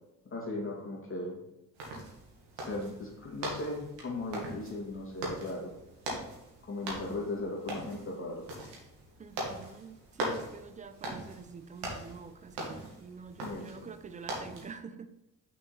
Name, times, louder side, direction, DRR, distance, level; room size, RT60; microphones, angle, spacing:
voice 1, 0.3-1.4 2.6-5.7 6.6-8.5 13.4-13.9, left 2 dB, 25° left, -3 dB, 2.4 m, -37 dB
sound 1, 1.8-14.7, right 1 dB, 60° right, 1.8 m, -41 dB
voice 2, 9.2-15.1, right 5 dB, 15° right, 11 dB, 0.4 m, -46 dB
6.1 x 4.7 x 4.2 m, 0.93 s
figure-of-eight pair, 45°, 46 cm